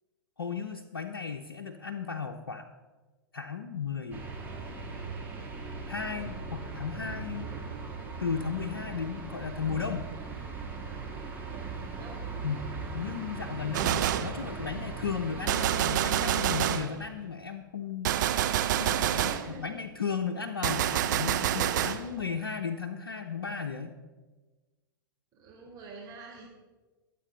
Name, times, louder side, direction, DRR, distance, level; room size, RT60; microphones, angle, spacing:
voice 1, 0.4-2.7 3.3-4.3 5.9-7.5 8.2-10.1 12.4-12.7 12.9-18.1 19.0-24.0, left 6 dB, 75° left, 2 dB, 0.9 m, -35 dB
sound 1, 4.1-15.7, right 4 dB, 15° right, 2.7 m, -39 dB
voice 2, 11.6-12.3 18.7-19.7 21.5-21.8 25.3-26.5, right 3 dB, 30° right, -2 dB, 3.6 m, -45 dB
Gunshot gunfire, 13.7-14.4 15.5-16.9 18.0-19.5 20.6-22.0, right 11 dB, 55° right, 0.8 m, -27 dB
22.5 x 8.7 x 3.9 m, 1.3 s
figure-of-eight pair, 105°, 12 cm